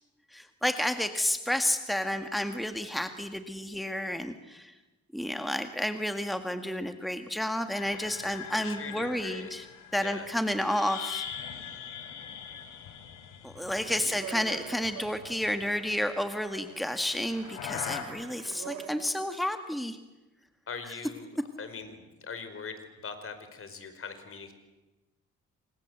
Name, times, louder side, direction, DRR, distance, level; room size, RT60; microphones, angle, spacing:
voice 1, 0.3-4.7 5.1-9.7 9.9-11.3 13.4-20.0, left 1 dB, ahead, 7 dB, 1.8 m, -31 dB
sound 1, 7.7-14.4 14.7-16.1 16.9-18.0, left 9 dB, 90° left, 3.6 m, -42 dB
voice 2, 8.5-9.5 10.0-10.3 14.0-14.1 20.7-24.5, left 5 dB, 45° left, 9 dB, 5.0 m, -42 dB
Speech, 13.5-19.4, right 9 dB, 90° right, 3.3 m, -46 dB
28.0 x 25.5 x 8.1 m, 1.1 s
cardioid pair, 90°, 30 cm